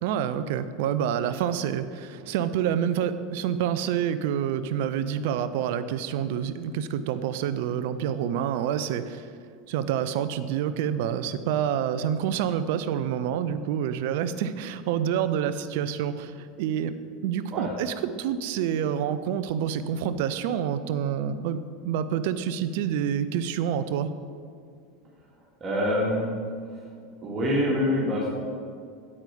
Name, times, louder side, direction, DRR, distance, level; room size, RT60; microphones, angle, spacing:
voice 1, 0.0-9.3 9.7-16.9 17.2-24.1, right 9 dB, 55° right, 12 dB, 0.5 m, -27 dB
voice 2, 25.6-26.3 26.7-26.8 27.2-28.3, left 1 dB, 30° right, -6 dB, 2.2 m, -25 dB
8.9 x 8.5 x 5.2 m, 2.2 s
figure-of-eight pair, 80°, 0 cm